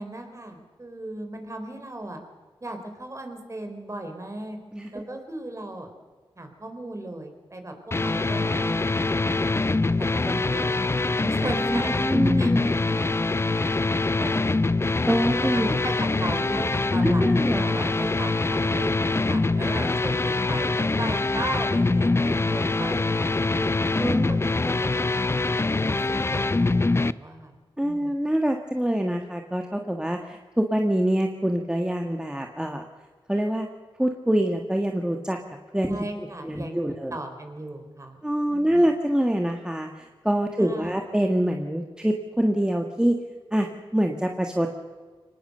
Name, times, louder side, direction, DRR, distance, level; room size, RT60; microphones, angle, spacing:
voice 1, 0.0-2.2 2.6-4.6 4.9-5.9 6.4-9.6 10.1-11.9 12.4-13.6 14.2-14.9 15.5-23.8 24.3-26.0 26.3-28.2 35.9-36.8 37.1-38.9 40.6-41.0, right 1 dB, 30° right, 5 dB, 4.3 m, -37 dB
sound 1, 7.9-27.1, left 3 dB, 25° left, 0.6 m, -24 dB
voice 2, 11.4-12.7 15.1-15.7 17.0-17.6 24.0-24.3 27.8-32.8 33.3-33.7 34.0-35.4 35.7-37.2 38.2-43.2 43.5-44.8, right 1 dB, 10° right, 3 dB, 1.6 m, -25 dB
24.5 x 19.0 x 6.8 m, 1.4 s
wide cardioid pair, 70°, 10 cm